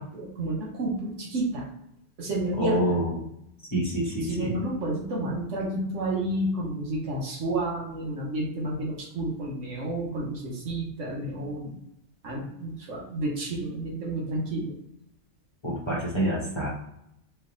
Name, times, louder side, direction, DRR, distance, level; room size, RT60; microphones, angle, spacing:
voice 1, 0.0-1.7 2.2-2.8 4.2-11.7 12.2-14.7, right 1 dB, 75° right, -2 dB, 1.3 m, -30 dB
voice 2, 2.6-3.1 3.7-4.5 15.6-16.7, right 1 dB, 25° left, -4 dB, 1.0 m, -27 dB
3.1 x 2.3 x 3.8 m, 0.78 s
omnidirectional pair, 1.3 m